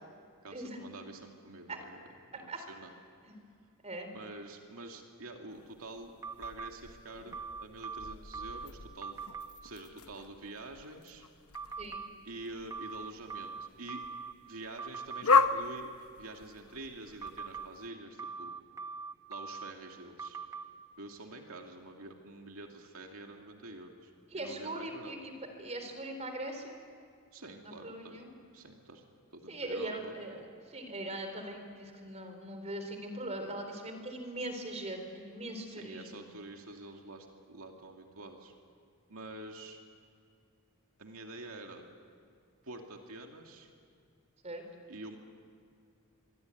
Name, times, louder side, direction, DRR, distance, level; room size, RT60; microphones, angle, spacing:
voice 1, 0.4-2.9 4.1-6.1 6.4-9.2 9.6-11.3 12.2-14.0 14.5-15.9 16.2-18.6 19.3-20.4 21.0-25.1 27.3-28.2 28.5-29.0 29.3-30.1 35.7-38.5 39.1-39.8 41.0-41.9 42.6-43.7 44.9-45.2, right 2 dB, 70° right, 2 dB, 2.6 m, -47 dB
voice 2, 2.3-2.6 3.2-3.4 3.8-4.1 11.8-12.0 24.3-25.3 25.6-26.7 27.6-28.3 29.5-36.2 44.4-44.6, right 1 dB, 30° right, 6 dB, 3.8 m, -40 dB
sound 1, 5.5-17.9, left 4 dB, 70° left, 1.1 m, -36 dB
sound 2, 6.2-6.7 7.3-8.7 9.0-9.5 11.5-12.1 12.7-14.3 14.8-15.2 17.2-17.7 18.2-19.7 20.2-20.6, right 5 dB, 15° right, 0.9 m, -41 dB
25.0 x 24.5 x 9.5 m, 2.3 s
head